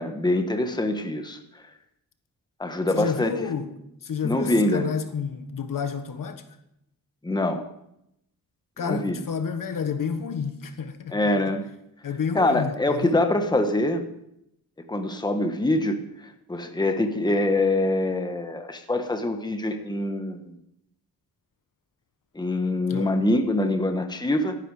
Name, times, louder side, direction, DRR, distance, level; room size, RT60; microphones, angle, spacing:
voice 1, 0.0-1.4 2.6-3.3 4.2-4.8 7.2-7.6 8.8-9.2 11.1-11.6 12.3-14.0 14.9-16.0 16.5-20.5 22.3-24.6, left 1 dB, 10° left, 6 dB, 1.3 m, -24 dB
voice 2, 2.9-3.7 4.0-6.4 8.8-11.2 12.0-13.2 22.9-23.1, left 6 dB, 65° left, 9 dB, 1.4 m, -30 dB
15.5 x 11.0 x 4.9 m, 0.79 s
cardioid pair, 110°, 36 cm